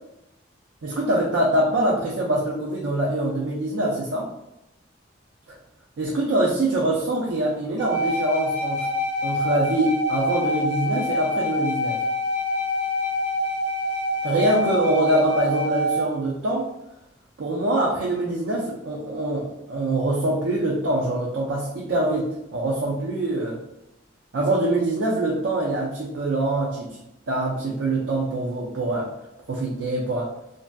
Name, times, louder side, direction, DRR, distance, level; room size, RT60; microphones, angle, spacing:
voice 1, 0.8-4.3 5.5-5.6 6.0-8.9 9.2-12.0 14.2-16.7 17.4-23.6 24.3-27.0 27.3-29.1 29.5-30.3, right 1 dB, 75° right, -3 dB, 0.4 m, -24 dB
sound 1, 7.8-16.0, left 1 dB, 20° right, 0.5 m, -26 dB
2.6 x 2.4 x 2.2 m, 0.87 s
head